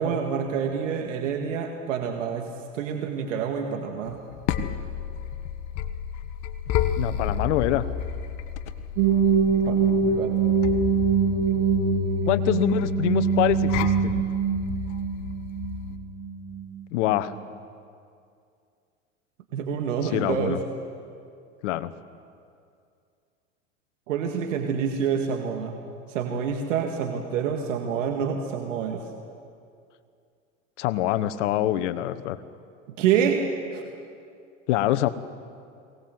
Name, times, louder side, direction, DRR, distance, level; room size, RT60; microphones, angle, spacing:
voice 1, 0.0-2.5 2.7-4.2 9.6-10.3 19.5-20.6 24.1-25.8 26.1-29.0 32.9-33.4 33.7-33.8, right 7 dB, 75° right, 3 dB, 2.1 m, -27 dB
sound 1, 4.1-16.0, left 8 dB, 50° left, 1.5 m, -32 dB
voice 2, 7.0-7.9 12.3-14.2 16.9-17.3 20.0-20.6 21.6-21.9 30.8-32.4 34.7-35.1, left 14 dB, 65° left, 13 dB, 1.2 m, -25 dB
sound 2, 9.0-16.8, right 5 dB, 55° right, 7.1 m, -23 dB
22.5 x 18.5 x 7.9 m, 2.4 s
hypercardioid pair, 95°, 38 cm